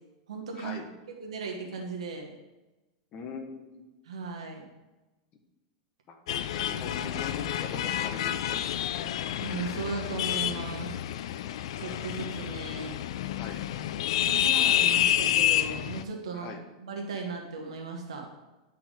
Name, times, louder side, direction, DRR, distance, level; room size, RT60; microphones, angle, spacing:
voice 1, 0.3-0.8 1.2-2.3 4.0-4.6 9.4-11.0 11.8-12.9 14.2-16.5 16.8-18.3, right 4 dB, 90° right, 0 dB, 1.2 m, -36 dB
voice 2, 3.1-3.8 6.1-9.1 13.4-13.7 16.3-16.6, left 5 dB, 35° left, 3 dB, 1.2 m, -41 dB
sound 1, 6.3-16.0, left 11 dB, 75° left, 0.4 m, -29 dB
9.8 x 4.6 x 3.7 m, 1.1 s
supercardioid pair, 130°, 3 cm